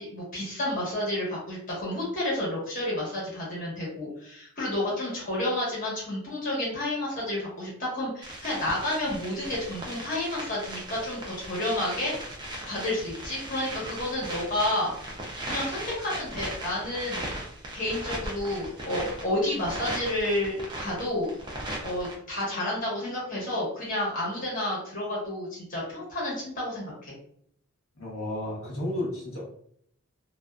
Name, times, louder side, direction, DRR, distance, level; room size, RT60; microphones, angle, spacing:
voice 1, 0.0-12.1 12.6-14.9 15.4-17.3 17.7-21.4 21.7-27.1, left 1 dB, 40° left, -6 dB, 1.0 m, -30 dB
sound 1, 8.2-22.1, right 1 dB, 20° right, 0.4 m, -38 dB
voice 2, 28.0-29.4, left 1 dB, 70° left, -5 dB, 0.8 m, -32 dB
2.5 x 2.2 x 2.2 m, 0.65 s
head